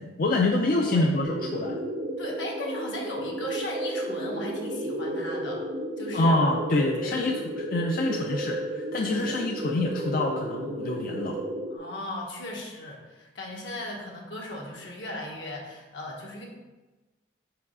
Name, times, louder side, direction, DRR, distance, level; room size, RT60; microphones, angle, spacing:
voice 1, 0.0-1.8 6.1-11.4, left 2 dB, 45° left, 1 dB, 0.4 m, -26 dB
sound 1, 1.2-11.8, right 1 dB, 40° right, 0.6 m, -33 dB
voice 2, 2.2-5.7 6.0-6.4 7.0-7.2 9.2-9.4 11.7-16.5, left 1 dB, 75° left, -1 dB, 1.2 m, -37 dB
4.8 x 4.7 x 4.8 m, 1.1 s
head